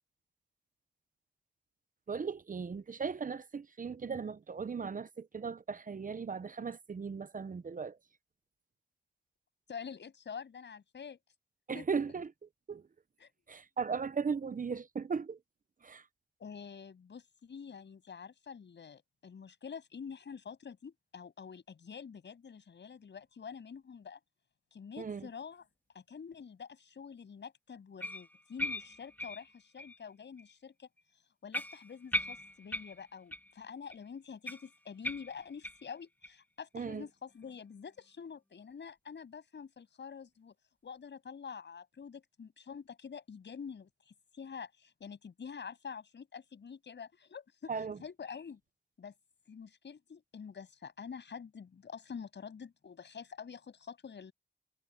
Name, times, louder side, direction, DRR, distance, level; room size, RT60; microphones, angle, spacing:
voice 1, 2.1-8.0 11.7-12.3 12.7-12.8 13.5-15.4 15.8-16.0 25.0-25.3 36.7-37.1 47.7-48.0, right 5 dB, 45° right, 0.9 m, -37 dB
voice 2, 9.7-11.2 11.7-11.8 13.2-13.3 16.4-24.2 24.7-25.6 25.9-30.9 31.4-40.6 40.8-48.6 49.0-49.1 49.5-54.3, left 6 dB, 70° left, 7.6 m, -47 dB
sound 1, 28.0-30.0 30.4-30.5 31.0-31.1 31.5-33.6 33.9-34.0 34.4-35.9 36.2-36.3 36.8-36.9 37.4-37.5, left 1 dB, 10° left, 2.8 m, -39 dB
cardioid pair, 65°, 19 cm